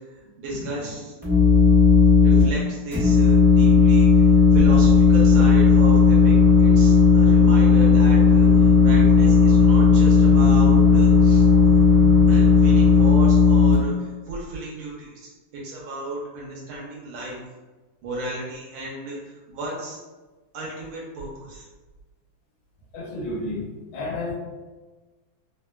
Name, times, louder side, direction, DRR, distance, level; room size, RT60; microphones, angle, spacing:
voice 1, 0.1-1.1 2.2-11.4 12.3-15.3 15.6-17.3 18.0-20.0 20.5-21.6, right 1 dB, 85° right, -4 dB, 1.5 m, -33 dB
sound 1, 1.2-2.4 2.9-13.7, left 5 dB, 25° right, 0.7 m, -15 dB
sound 2, 5.2-13.1, left 1 dB, 50° left, 1.1 m, -36 dB
voice 2, 22.9-23.7 23.9-24.4, left 2 dB, 80° left, -3 dB, 1.5 m, -31 dB
3.7 x 2.1 x 2.2 m, 1.2 s
omnidirectional pair, 2.3 m